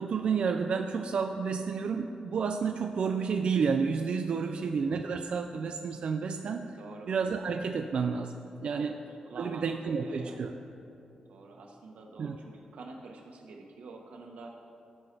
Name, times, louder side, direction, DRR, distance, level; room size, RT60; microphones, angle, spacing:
voice 1, 0.0-6.8 7.1-8.3 8.6-8.9 9.4-10.5 12.2-12.4, right 5 dB, 55° right, 5 dB, 0.4 m, -30 dB
voice 2, 4.3-4.8 6.8-7.1 8.8-10.5 11.1-14.6, right 3 dB, 90° right, 1 dB, 1.2 m, -47 dB
16.0 x 5.5 x 3.4 m, 2.7 s
wide cardioid pair, 135°, 2 cm